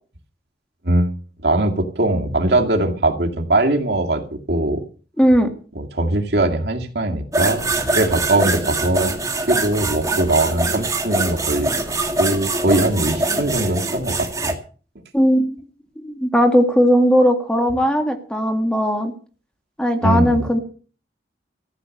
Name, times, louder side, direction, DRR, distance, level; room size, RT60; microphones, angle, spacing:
voice 1, 0.8-1.1 1.4-4.2 4.5-4.8 5.8-9.2 9.5-11.7 12.2-14.5 20.0-20.5, right 1 dB, 65° right, 3 dB, 2.2 m, -20 dB
voice 2, 5.2-5.5 15.1-15.6 16.0-19.1 19.8-20.6, equal, 5° left, 5 dB, 1.9 m, -17 dB
sound 1, 7.3-14.5, right 2 dB, 20° right, 2.1 m, -23 dB
15.0 x 10.0 x 6.5 m, 0.39 s
head